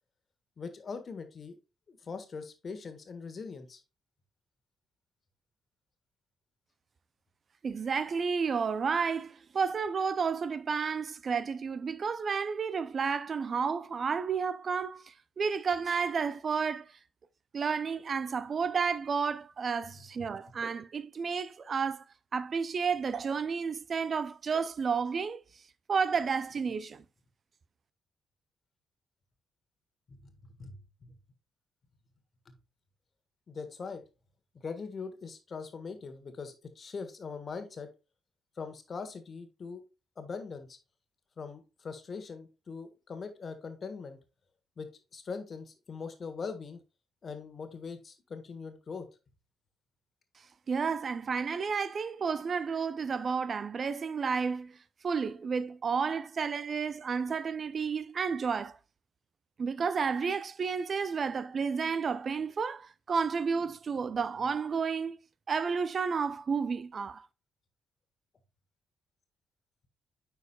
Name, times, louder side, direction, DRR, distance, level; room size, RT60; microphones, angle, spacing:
voice 1, 0.6-1.6 1.9-3.8 30.1-31.1 32.5-32.6 33.5-34.0 34.5-37.9 38.6-39.8 40.2-40.8 41.4-44.2 44.8-46.8 47.2-49.1, left 5 dB, 45° left, 1.4 m, -41 dB
voice 2, 7.6-16.9 17.5-22.0 22.3-25.4 25.9-27.0 50.7-54.8 55.0-58.8 59.6-65.2 65.5-67.3, right 5 dB, 50° right, 0.5 m, -31 dB
9.4 x 4.8 x 2.3 m
hypercardioid pair, 45°, 0 cm